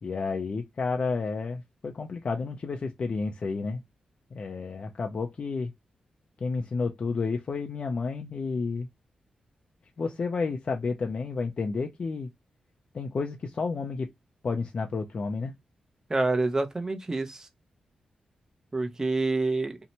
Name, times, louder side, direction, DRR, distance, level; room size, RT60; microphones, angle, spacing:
voice 1, 0.0-3.8 4.3-5.7 6.4-8.9 10.0-12.3 12.9-14.1 14.4-15.5, left 4 dB, 50° left, 0.4 m, -31 dB
voice 2, 16.1-17.5 18.7-19.8, right 3 dB, 25° right, 0.6 m, -27 dB
2.7 x 2.1 x 2.7 m
cardioid pair, 70°, 2 cm